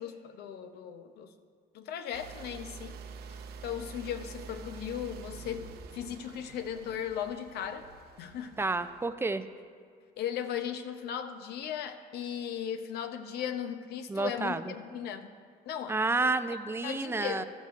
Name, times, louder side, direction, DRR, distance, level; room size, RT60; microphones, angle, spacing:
voice 1, 0.0-1.3 1.7-3.0 3.6-7.9 8.2-8.6 10.2-15.3 15.6-16.0 16.8-17.4, left 9 dB, 75° left, 8 dB, 0.7 m, -37 dB
sound 1, 2.1-9.1, right 5 dB, 70° right, 0.7 m, -47 dB
voice 2, 8.6-9.4 14.1-14.7 15.9-17.4, right 3 dB, 15° right, 11 dB, 0.4 m, -30 dB
13.5 x 13.0 x 2.5 m, 2.1 s
cardioid pair, 110°, 17 cm